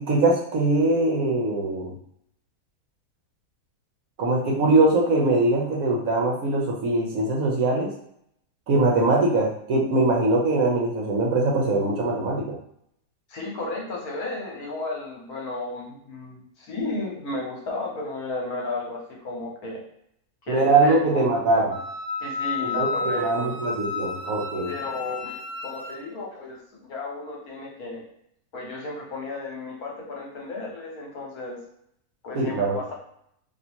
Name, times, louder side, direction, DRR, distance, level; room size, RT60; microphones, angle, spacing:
voice 1, 0.0-1.9 4.2-7.9 8.7-12.6 20.5-21.8 22.7-24.7 32.4-32.8, right 2 dB, 65° right, -1 dB, 1.1 m, -22 dB
voice 2, 13.3-19.8 20.5-21.2 22.2-23.5 24.6-28.0 28.5-31.6 32.2-32.9, left 2 dB, 65° left, -1 dB, 1.4 m, -34 dB
Wind instrument woodwind instrument, 21.7-26.0, left 3 dB, 45° left, 1.1 m, -31 dB
2.8 x 2.7 x 4.3 m, 0.72 s
omnidirectional pair, 1.7 m